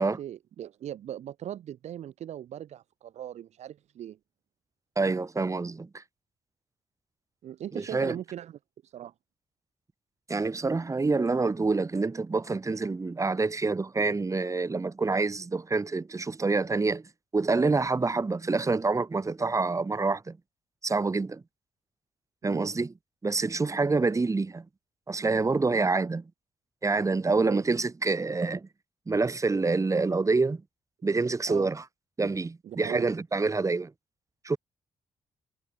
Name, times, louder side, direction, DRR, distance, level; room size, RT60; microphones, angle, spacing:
voice 1, 0.0-4.2 7.4-9.1 22.4-22.7 27.4-27.6 31.4-31.7 32.6-33.1, right 11 dB, 75° right, 1.6 m, -40 dB
voice 2, 5.0-6.0 7.7-8.1 10.3-17.0 17.3-20.4 20.8-21.4 22.4-22.9 23.2-24.6 25.1-26.2 26.8-28.7 29.1-30.6 31.0-31.8 32.2-33.9 34.4-34.6, right 3 dB, 25° right, 1.0 m, -27 dB
supercardioid pair, 55°, 12 cm